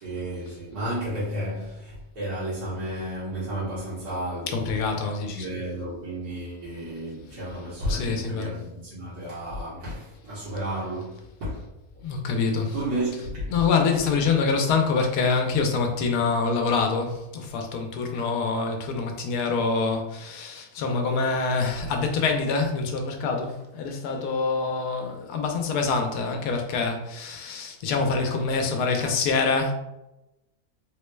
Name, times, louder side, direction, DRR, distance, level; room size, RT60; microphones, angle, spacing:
voice 1, 0.0-4.7 5.2-11.7 12.7-13.5 18.1-18.2 21.3-21.4, right 1 dB, 90° right, 1.7 m, -32 dB
voice 2, 4.5-5.6 7.9-8.6 12.0-12.7 13.5-29.7, left 4 dB, 85° left, 1.2 m, -25 dB
3.7 x 2.2 x 3.1 m
omnidirectional pair, 1.6 m